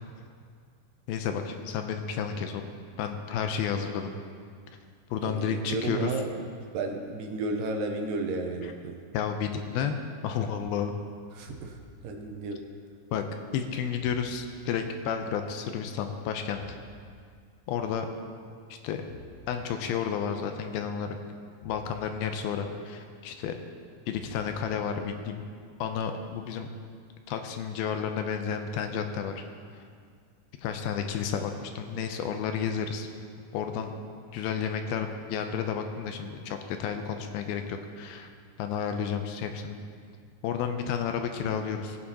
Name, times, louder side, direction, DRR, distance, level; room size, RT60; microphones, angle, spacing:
voice 1, 1.1-2.7 3.0-4.1 5.1-6.2 8.6-8.7 9.1-10.0 10.2-10.9 13.1-13.2 13.5-16.8 17.7-18.1 18.8-19.0 19.5-21.1 21.7-23.5 24.1-25.4 25.8-26.7 27.3-29.4 30.6-33.1 33.5-33.9 34.3-38.3 38.6-39.8 40.4-42.0, left 7 dB, 80° left, 6 dB, 2.4 m, -31 dB
voice 2, 5.2-6.3 6.7-9.0 11.3-11.8 12.0-12.6, right 3 dB, 75° right, 3 dB, 2.2 m, -32 dB
sound 1, 11.5-12.0 14.0-14.6 16.5-17.1 19.1-19.7 21.6-22.2 24.1-24.7, left 4 dB, 60° left, 2.0 m, -49 dB
19.0 x 9.6 x 2.9 m, 2.1 s
omnidirectional pair, 4.6 m